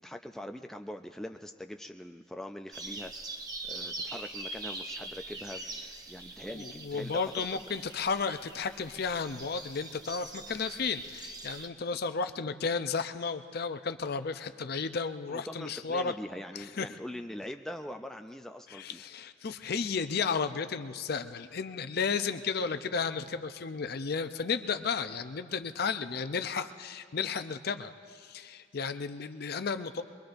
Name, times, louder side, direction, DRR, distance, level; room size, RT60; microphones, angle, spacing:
voice 1, 0.0-3.1 3.6-7.6 15.3-19.0, left 1 dB, ahead, 5 dB, 0.3 m, -43 dB
sound 1, 2.7-11.7, right 2 dB, 20° right, 0.8 m, -43 dB
voice 2, 6.5-16.1 16.5-16.9 18.7-30.0, left 5 dB, 55° left, 10 dB, 0.5 m, -33 dB
23.5 x 23.0 x 2.6 m, 2.4 s
head